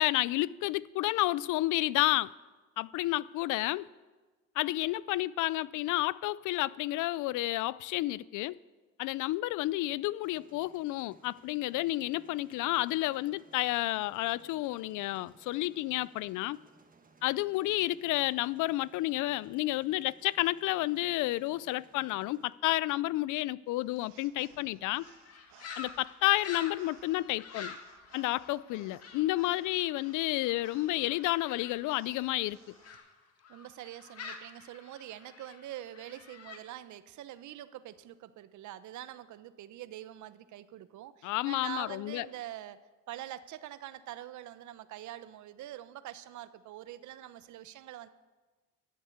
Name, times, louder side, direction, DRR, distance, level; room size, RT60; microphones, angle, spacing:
voice 1, 0.0-2.3 2.8-3.9 4.6-8.6 9.0-16.6 17.2-25.0 25.8-27.8 28.1-32.7 41.2-42.3, left 18 dB, 65° left, 0.4 m, -31 dB
sound 1, 10.2-22.5, right 4 dB, 25° right, 1.5 m, -62 dB
sound 2, 23.7-33.0, right 10 dB, 85° right, 1.3 m, -61 dB
sound 3, 25.0-33.0 33.4-36.6, left 5 dB, 50° left, 1.7 m, -48 dB
voice 2, 33.5-42.8 43.1-48.1, right 13 dB, 60° right, 0.8 m, -45 dB
12.5 x 7.4 x 8.6 m
cardioid pair, 100°, 32 cm